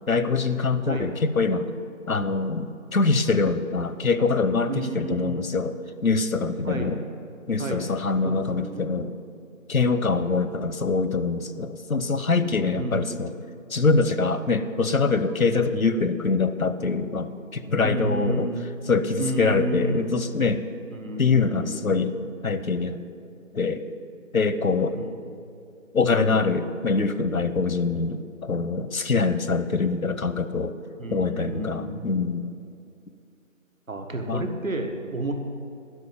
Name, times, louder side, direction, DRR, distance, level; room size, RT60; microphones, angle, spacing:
voice 1, 0.1-1.7 2.1-5.7 6.0-7.0 7.5-9.1 9.7-13.3 13.7-18.5 18.9-20.6 21.2-22.1 22.4-23.0 23.5-23.9 24.3-25.0 25.9-30.8 31.1-32.5 34.3-34.4, left 4 dB, 85° left, 12 dB, 0.9 m, -24 dB
voice 2, 4.7-5.5 6.6-7.0 7.6-7.9 8.2-8.8 12.7-13.1 17.8-18.7 19.2-20.1 20.9-22.1 25.0-25.4 31.0-32.1 33.9-35.3, right 1 dB, 75° right, 4 dB, 1.7 m, -31 dB
12.0 x 6.2 x 9.1 m, 2.4 s
figure-of-eight pair, 165°, 40 cm